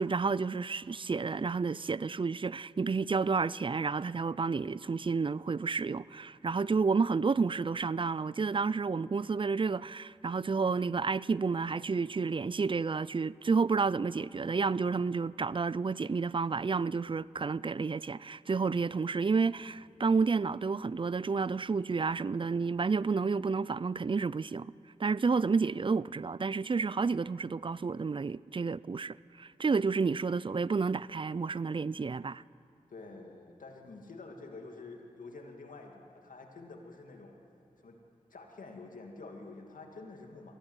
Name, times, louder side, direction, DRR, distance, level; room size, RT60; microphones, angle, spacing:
voice 1, 0.0-24.7 25.0-32.4, right 4 dB, 40° right, 0.4 m, -30 dB
voice 2, 32.9-37.4 37.8-38.0 38.3-40.5, left 3 dB, 85° left, 2.3 m, -48 dB
22.5 x 15.5 x 8.1 m
cardioid pair, 40°, 14 cm